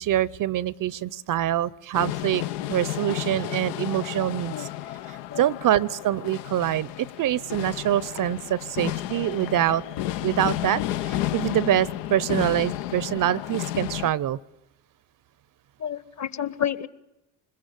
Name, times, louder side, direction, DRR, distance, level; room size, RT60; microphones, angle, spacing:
voice 1, 0.0-2.4 2.7-4.7 5.1-9.8 10.2-14.4, right 12 dB, 45° right, 23 dB, 0.8 m, -25 dB
sound 1, 1.9-14.1, left 14 dB, 70° left, 1.0 m, -32 dB
voice 2, 15.8-16.9, left 9 dB, 35° left, 16 dB, 1.4 m, -30 dB
25.5 x 21.5 x 8.3 m, 0.94 s
hypercardioid pair, 70°, 45 cm